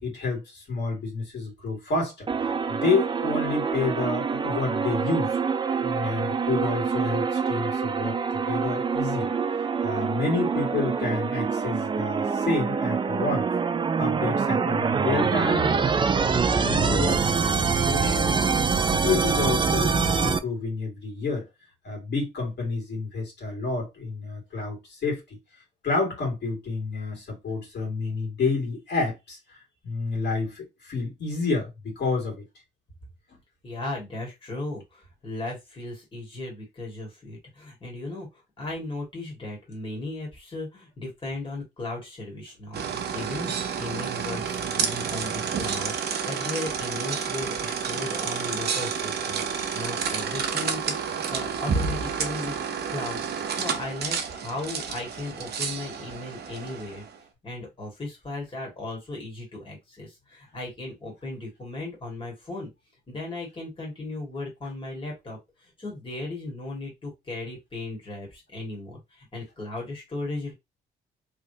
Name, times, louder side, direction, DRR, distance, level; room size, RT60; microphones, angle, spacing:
voice 1, 0.0-2.3 2.7-5.4 5.8-9.3 9.8-13.5 14.0-21.5 21.8-25.4 25.8-29.6 29.8-32.4 33.3-33.4 49.7-49.8, left 4 dB, 60° left, 2.2 m, -29 dB
sound 1, 2.3-20.4, right 5 dB, 25° right, 0.4 m, -25 dB
voice 2, 33.6-38.3 38.6-42.8 43.1-49.4 49.7-52.6 52.9-53.3 53.5-57.1 57.4-62.7 63.1-70.5, left 2 dB, 25° left, 1.9 m, -36 dB
sound 2, 42.7-57.1, right 6 dB, 55° right, 0.8 m, -30 dB
3.3 x 2.9 x 2.8 m
cardioid pair, 90°, 20 cm